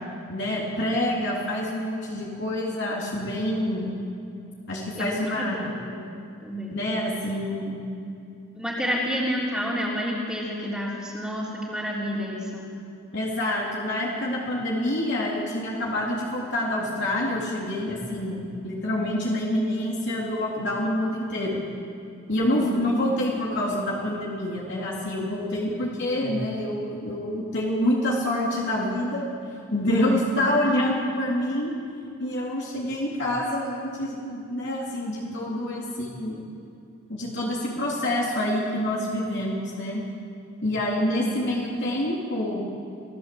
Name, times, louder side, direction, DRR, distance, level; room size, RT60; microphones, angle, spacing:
voice 1, 0.3-3.9 4.7-5.8 6.7-7.8 13.1-21.6 22.3-29.3 29.7-31.7 32.2-36.4 37.1-40.0 40.6-42.7, left 1 dB, 55° left, -4 dB, 3.3 m, -27 dB
voice 2, 5.0-6.0 6.4-6.8 8.6-12.7 22.5-22.8 41.2-41.4, equal, 5° right, -6 dB, 3.5 m, -30 dB
26.0 x 16.0 x 7.8 m, 2.6 s
head